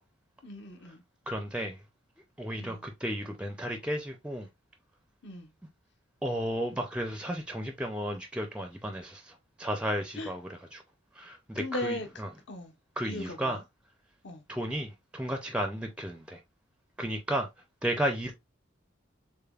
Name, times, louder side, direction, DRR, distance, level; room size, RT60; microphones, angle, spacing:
voice 1, 0.4-1.0 2.6-2.9 5.2-5.5 10.1-10.3 11.6-12.7 13.0-13.6 14.2-14.4, left 1 dB, 65° left, 0.9 m, -38 dB
voice 2, 1.3-1.7 2.4-4.5 6.2-9.2 9.6-10.8 11.2-12.3 13.0-13.6 14.5-16.4 17.0-17.5 17.8-18.3, equal, 5° right, 0.4 m, -33 dB
6.5 x 2.2 x 2.3 m
head